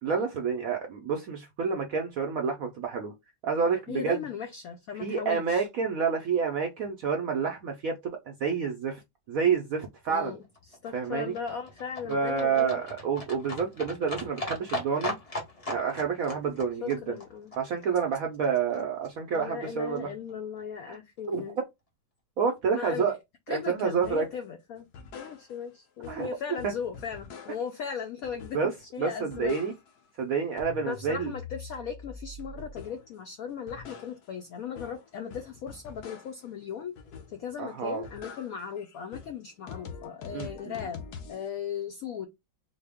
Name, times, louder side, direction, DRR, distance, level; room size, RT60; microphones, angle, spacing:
voice 1, 0.0-3.1 3.4-4.2 5.0-9.0 9.3-10.4 10.9-11.3 12.1-15.2 15.7-17.1 17.6-20.1 20.9-21.0 21.3-21.4 22.4-23.1 23.5-24.3 26.1-26.3 26.6-26.7 28.5-28.7 29.0-29.7 30.2-31.3 37.6-38.0 40.3-40.7, right 6 dB, 75° right, 0.7 m, -29 dB
voice 2, 3.9-5.6 10.1-10.4 10.7-12.8 16.8-17.5 19.3-21.6 22.7-23.2 23.5-24.9 25.1-29.6 30.8-36.9 37.3-41.0 41.3-42.3, left 7 dB, 85° left, 0.7 m, -37 dB
Livestock farm animals working animals, 10.2-18.5 18.7-18.8 19.0-19.1 19.3-19.4 19.7-19.8 20.0-20.1 20.3-20.4 20.6-20.7 20.9-21.0, left 1 dB, 40° left, 0.5 m, -39 dB
sound 1, 24.0-24.3 24.8-25.8 26.0-27.8 28.2-28.9 29.1-30.1 30.4-33.1 33.5-36.5 37.0-37.6 37.9-41.5, left 5 dB, 65° left, 1.2 m, -45 dB
4.2 x 2.0 x 3.4 m
omnidirectional pair, 2.1 m